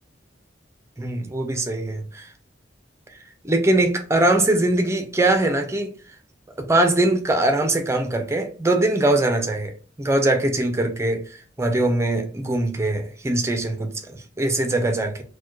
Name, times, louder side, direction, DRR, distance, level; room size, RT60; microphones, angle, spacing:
voice 1, 1.0-2.3 3.4-5.9 6.6-15.2, right 2 dB, 15° right, 0.6 m, -22 dB
4.3 x 2.2 x 3.0 m
head